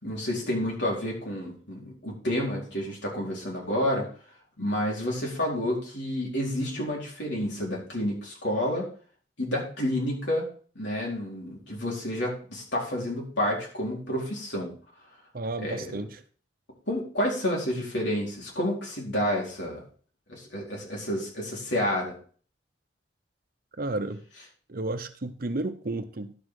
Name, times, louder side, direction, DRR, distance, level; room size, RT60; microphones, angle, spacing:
voice 1, 0.0-4.1 4.6-8.8 9.4-10.4 10.7-14.7 15.6-16.0 16.9-19.8 20.3-22.1, left 1 dB, 85° left, -2 dB, 4.4 m, -29 dB
voice 2, 15.3-16.2 23.8-24.2 24.7-26.4, right 2 dB, 55° right, 10 dB, 0.9 m, -32 dB
11.5 x 6.2 x 4.9 m, 0.43 s
head